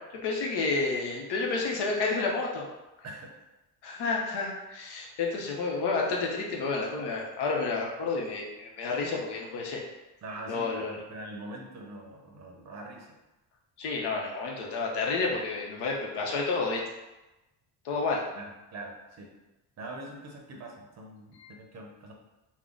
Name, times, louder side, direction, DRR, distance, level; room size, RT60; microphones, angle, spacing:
voice 1, 0.2-2.6 3.8-9.8 10.5-11.0 13.8-16.8 17.8-18.2 21.4-21.5, left 3 dB, 70° left, -1 dB, 0.9 m, -30 dB
voice 2, 10.2-13.1 18.4-19.3 19.8-22.1, right 2 dB, 40° right, 1 dB, 0.6 m, -43 dB
3.6 x 2.1 x 3.7 m, 1.0 s
cardioid pair, 155°, 41 cm